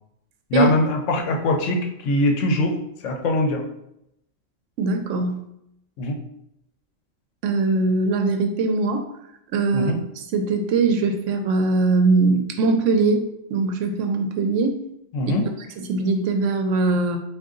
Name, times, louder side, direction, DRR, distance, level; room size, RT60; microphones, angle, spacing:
voice 1, 0.5-1.8 2.0-2.8 3.0-3.6 6.0-6.2 9.7-9.9 15.1-15.4, left 1 dB, 75° left, 2 dB, 1.0 m, -22 dB
voice 2, 4.8-5.4 7.4-9.1 9.5-14.8 15.8-17.2, right 3 dB, 75° right, 5 dB, 0.9 m, -21 dB
3.7 x 2.6 x 3.7 m, 0.80 s
omnidirectional pair, 1.3 m